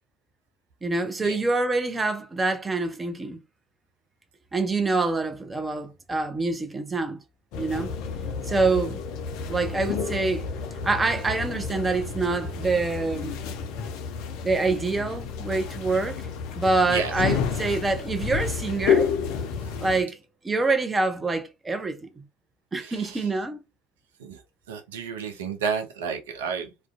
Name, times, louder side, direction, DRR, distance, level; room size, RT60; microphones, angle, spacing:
voice 1, 0.8-3.4 4.5-7.2 7.6-7.9 8.4-9.0 9.5-10.4 10.8-13.4 14.4-16.3 16.5-19.1 19.8-20.2 20.4-22.2 22.7-23.6, right 3 dB, 20° right, 0.5 m, -26 dB
sound 1, 7.5-20.0, left 6 dB, 55° left, 0.4 m, -30 dB
voice 2, 22.8-23.3 24.2-24.4 24.7-26.9, right 6 dB, 70° right, 0.5 m, -31 dB
2.4 x 2.1 x 2.4 m
figure-of-eight pair, 65°, 0 cm